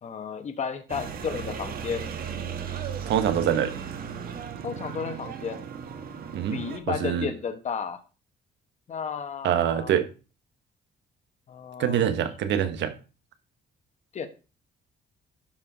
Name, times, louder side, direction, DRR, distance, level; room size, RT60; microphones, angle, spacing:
voice 1, 0.0-2.2 4.6-5.6 6.5-8.0 8.9-9.9 11.5-12.1 14.1-14.3, left 6 dB, 40° left, 1.2 m, -33 dB
sound 1, 0.9-6.8, right 7 dB, 55° right, 1.3 m, -36 dB
voice 2, 3.1-3.7 6.3-6.6 6.9-7.3 9.4-10.1 11.8-12.9, right 9 dB, 80° right, 1.3 m, -24 dB
12.0 x 4.7 x 5.0 m
cardioid pair, 150°, 19 cm